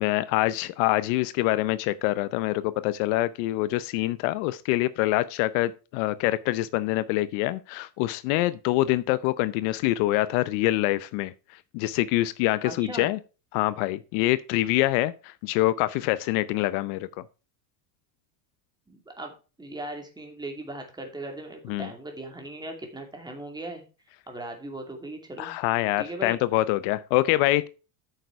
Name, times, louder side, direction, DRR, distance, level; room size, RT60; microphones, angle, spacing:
voice 1, 0.0-11.3 11.7-13.2 13.5-17.1 21.7-21.9 25.4-27.7, left 17 dB, 65° left, 0.7 m, -25 dB
voice 2, 12.6-13.1 18.9-23.8 24.3-25.5 26.0-26.4, right 1 dB, 10° right, 2.7 m, -38 dB
9.1 x 6.7 x 4.6 m
cardioid pair, 145°, 48 cm